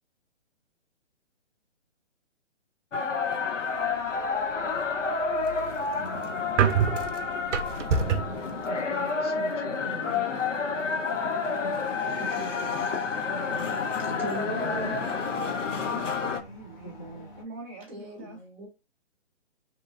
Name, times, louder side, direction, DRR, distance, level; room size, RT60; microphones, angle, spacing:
sound 1, 2.9-16.4, left 4 dB, 90° left, 0.7 m, -29 dB
sound 2, 5.2-8.4, right 7 dB, 80° right, 0.5 m, -26 dB
voice 1, 8.7-10.4 11.6-13.7 16.8-17.3, equal, 20° left, 0.6 m, -43 dB
sound 3, 10.1-17.4, right 1 dB, 40° left, 1.2 m, -51 dB
voice 2, 14.2-15.4 15.9-16.0 17.9-18.7, right 2 dB, 5° right, 0.9 m, -38 dB
voice 3, 16.3-18.4, right 2 dB, 20° right, 0.3 m, -45 dB
2.9 x 2.4 x 2.3 m
hypercardioid pair, 145°, 36 cm